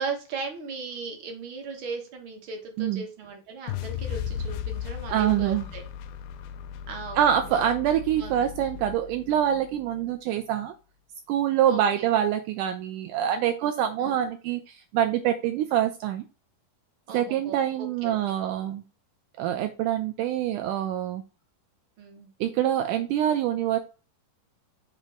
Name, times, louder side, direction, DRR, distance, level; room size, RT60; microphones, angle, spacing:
voice 1, 0.0-5.8 6.9-7.7 8.1-8.5 11.7-12.1 14.0-14.3 17.1-18.1 22.0-22.3, right 4 dB, 65° right, 3 dB, 1.2 m, -37 dB
sound 1, 3.7-9.8, left 9 dB, 85° left, 2.3 m, -36 dB
voice 2, 5.1-5.7 7.2-10.8 11.3-16.2 17.1-18.8 19.4-21.2 22.4-23.8, right 10 dB, 80° right, 8 dB, 1.8 m, -25 dB
7.4 x 2.9 x 5.0 m, 0.33 s
omnidirectional pair, 4.1 m